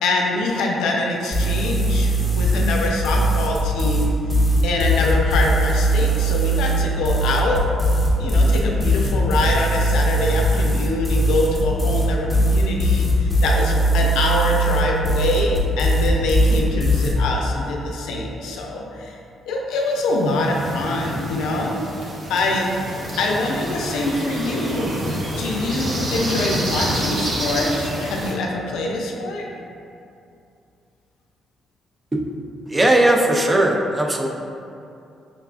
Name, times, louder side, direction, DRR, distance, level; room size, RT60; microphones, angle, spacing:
voice 1, 0.0-4.1 4.6-7.7 8.2-19.1 19.4-21.8 22.3-22.7 23.2-25.0 25.4-29.5, left 2 dB, 90° left, -1 dB, 0.5 m, -24 dB
sound 1, 1.3-17.1, right 1 dB, 5° left, 0.8 m, -19 dB
sound 2, 19.8-28.3, right 1 dB, 50° right, 0.7 m, -28 dB
voice 2, 32.7-34.3, right 1 dB, 20° right, 1 dB, 0.4 m, -18 dB
5.7 x 2.3 x 2.4 m, 2.6 s
cardioid pair, 90°, 0 cm